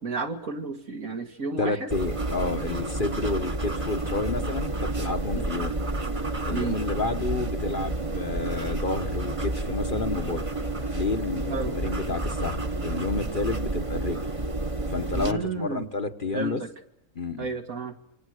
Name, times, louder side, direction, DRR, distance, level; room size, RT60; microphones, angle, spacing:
voice 1, 0.0-1.9 5.3-5.5 6.5-6.8 11.5-11.8 15.1-15.9 16.3-16.7 17.4-18.0, right 3 dB, 70° right, 4 dB, 2.7 m, -32 dB
voice 2, 1.6-5.7 6.4-10.4 10.9-14.2 14.9-16.6 17.1-17.5, left 3 dB, 35° left, 7 dB, 1.3 m, -30 dB
sound 1, 1.9-15.3, right 2 dB, 25° right, 1.3 m, -30 dB
27.0 x 26.5 x 6.5 m, 0.78 s
omnidirectional pair, 1.5 m